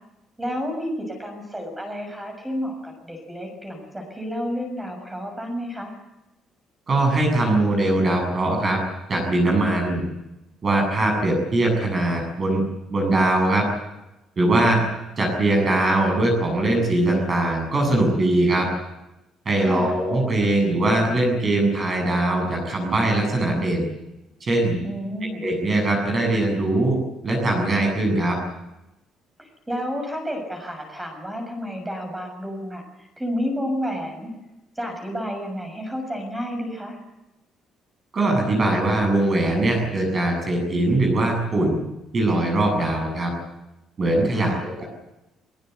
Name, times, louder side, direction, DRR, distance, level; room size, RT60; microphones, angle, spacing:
voice 1, 0.4-5.9 19.6-20.0 24.8-25.4 29.4-34.3 34.8-37.0 44.3-44.7, equal, 10° right, 4 dB, 6.9 m, -31 dB
voice 2, 6.9-8.8 9.1-10.1 10.6-12.6 12.9-13.6 14.4-14.8 15.2-18.7 19.5-23.9 24.4-24.8 25.4-27.0 27.2-28.4 38.1-41.8 42.1-43.3 44.0-44.8, right 2 dB, 25° right, 2 dB, 7.6 m, -21 dB
23.0 x 22.5 x 8.2 m, 0.96 s
cardioid pair, 175°, 0 cm